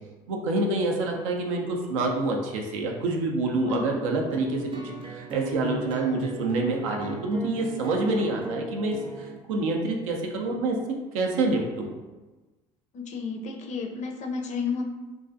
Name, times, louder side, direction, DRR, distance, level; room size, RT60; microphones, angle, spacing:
voice 1, 0.3-10.8 11.1-11.9, right 2 dB, 90° right, 1 dB, 0.4 m, -27 dB
sound 1, 4.3-9.4, right 2 dB, 30° right, 0.5 m, -37 dB
voice 2, 12.9-14.8, left 5 dB, 45° left, 2 dB, 0.4 m, -32 dB
2.3 x 2.3 x 2.5 m, 1.2 s
hypercardioid pair, 70°, 16 cm